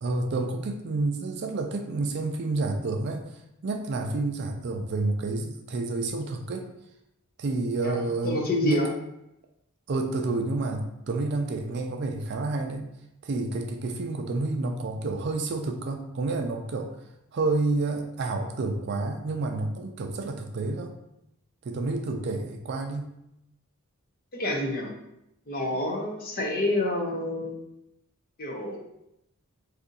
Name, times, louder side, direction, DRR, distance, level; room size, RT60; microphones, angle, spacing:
voice 1, 0.0-3.3 3.6-6.7 7.4-8.9 9.9-12.9 13.2-16.9 17.3-20.9 21.6-23.1, right 3 dB, 50° right, 4 dB, 0.4 m, -29 dB
voice 2, 8.2-8.9 24.3-24.9 25.5-27.6 28.4-28.8, left 1 dB, 40° left, 0 dB, 0.6 m, -28 dB
2.7 x 2.5 x 3.8 m, 0.83 s
head